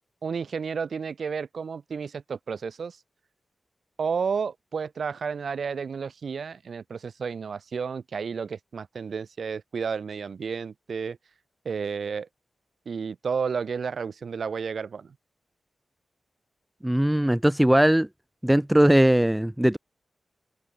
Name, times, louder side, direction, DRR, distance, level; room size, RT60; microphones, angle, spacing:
voice 1, 0.2-3.0 4.0-11.2 11.6-12.3 12.8-15.1, right 6 dB, 65° right, 4.8 m, -31 dB
voice 2, 16.8-18.1 18.4-19.8, right 1 dB, 5° right, 0.5 m, -20 dB
wide cardioid pair, 140°, 0 cm